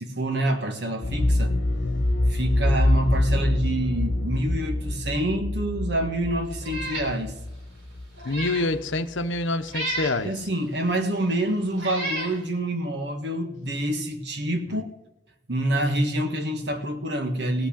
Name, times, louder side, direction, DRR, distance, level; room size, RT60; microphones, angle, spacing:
voice 1, 0.1-1.6 2.3-7.3 10.2-14.9 15.5-17.7, right 1 dB, 60° right, 5 dB, 1.5 m, -27 dB
sound 1, 1.0-8.8 9.1-9.2, left 1 dB, 60° left, 1.5 m, -25 dB
Meow, 6.6-7.1 7.5-7.6 8.2-8.7 9.7-10.2 11.1-11.2 11.8-12.3, right 1 dB, 80° right, 3.3 m, -31 dB
voice 2, 8.2-10.3 14.7-14.8, left 2 dB, 75° left, 10 dB, 0.9 m, -26 dB
16.5 x 6.0 x 8.5 m, 0.89 s
head